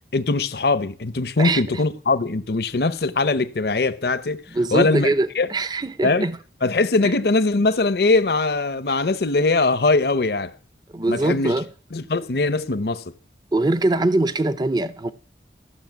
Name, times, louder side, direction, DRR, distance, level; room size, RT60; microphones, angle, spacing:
voice 1, 0.1-4.4 4.7-5.5 6.0-6.3 6.6-10.5 11.1-11.5 11.9-13.1, left 3 dB, 60° left, 0.7 m, -21 dB
voice 2, 1.4-1.8 4.5-6.4 7.0-7.1 10.9-11.7 13.5-15.1, right 2 dB, 25° right, 0.5 m, -22 dB
14.5 x 6.5 x 9.2 m
head